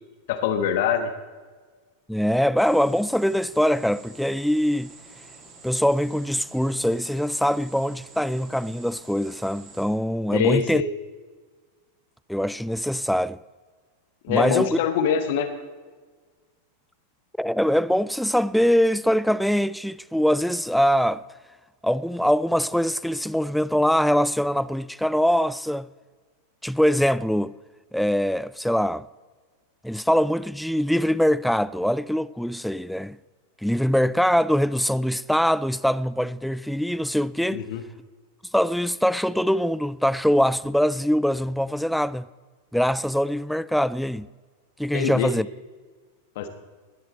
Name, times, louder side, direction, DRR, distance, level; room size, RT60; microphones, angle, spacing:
voice 1, 0.3-1.1 10.3-10.9 14.2-15.5 37.5-37.8 44.9-45.3 46.3-46.5, left 7 dB, 50° left, 1.2 m, -24 dB
voice 2, 2.1-4.9 5.6-10.8 12.3-13.4 14.3-14.8 17.4-21.2 21.8-25.9 26.6-27.5 27.9-29.1 29.8-33.2 33.6-37.6 38.5-42.3 42.7-44.3 44.8-45.5, equal, ahead, 0.3 m, -23 dB
sound 1, 2.6-9.9, right 3 dB, 30° right, 4.2 m, -48 dB
20.5 x 11.0 x 4.3 m
figure-of-eight pair, 90°, 0 cm